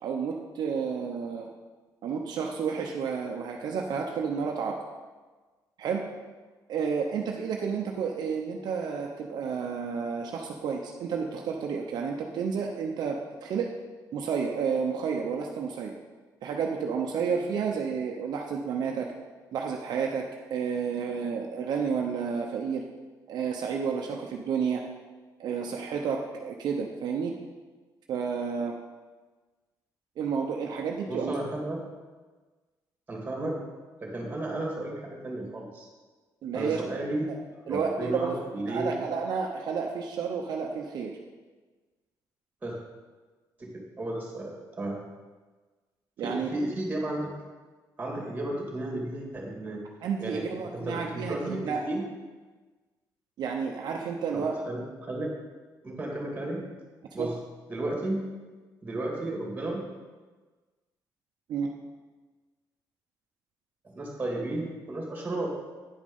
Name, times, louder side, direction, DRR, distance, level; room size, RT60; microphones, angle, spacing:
voice 1, 0.0-1.5 2.0-4.7 5.8-6.0 6.7-13.2 13.4-13.7 14.1-15.9 16.4-19.1 19.5-20.2 20.5-22.8 23.3-24.8 25.4-27.3 28.1-28.7 30.2-31.3 36.4-36.8 37.7-38.4 38.7-41.1 46.2-46.5 50.0-51.8 53.4-54.5 57.2-57.3 61.5-61.7, right 6 dB, 70° right, 1 dB, 0.8 m, -31 dB
voice 2, 31.1-31.9 33.1-33.7 34.0-35.9 36.5-39.0 42.6-42.8 43.6-45.0 46.2-47.3 48.0-49.8 50.2-52.1 54.3-55.4 55.8-56.7 57.1-57.4 57.7-58.3 58.8-59.9 63.8-65.6, right 1 dB, 20° right, -1 dB, 2.6 m, -33 dB
9.7 x 5.2 x 5.4 m, 1.3 s
cardioid pair, 120°, 7 cm